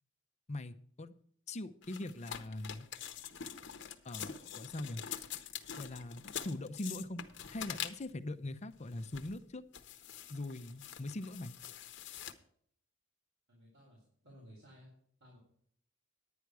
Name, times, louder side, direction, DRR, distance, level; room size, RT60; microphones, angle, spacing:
voice 1, 0.5-1.1 1.5-2.9 4.0-5.0 5.8-7.2 7.5-9.6 10.3-11.5, left 2 dB, 35° left, 10 dB, 0.6 m, -42 dB
sound 1, 1.8-8.2 8.8-9.4 9.7-12.3, left 9 dB, 60° left, 0.9 m, -45 dB
voice 2, 13.5-14.9 15.2-15.4, equal, 65° right, -5 dB, 4.3 m, -57 dB
10.5 x 9.7 x 4.7 m, 0.63 s
head